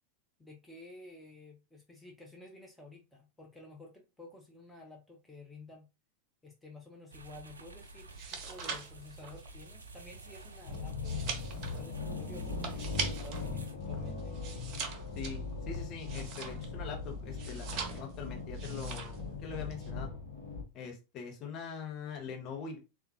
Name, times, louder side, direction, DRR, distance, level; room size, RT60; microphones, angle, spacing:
voice 1, 0.4-5.9 6.4-11.2 11.7-14.3, left 2 dB, 5° left, 0 dB, 0.7 m, -52 dB
sound 1, 7.1-13.8, right 3 dB, 75° right, 0.4 m, -51 dB
sound 2, 8.0-13.5 13.8-16.8 17.3-18.2 18.5-19.2 19.5-19.9, right 5 dB, 40° right, 0.7 m, -42 dB
sound 3, 10.7-20.6, left 4 dB, 70° left, 0.8 m, -39 dB
voice 2, 15.1-20.1 20.7-22.8, left 6 dB, 35° left, 2 dB, 0.9 m, -43 dB
3.5 x 2.2 x 2.7 m, 0.28 s
figure-of-eight pair, 90°, 0 cm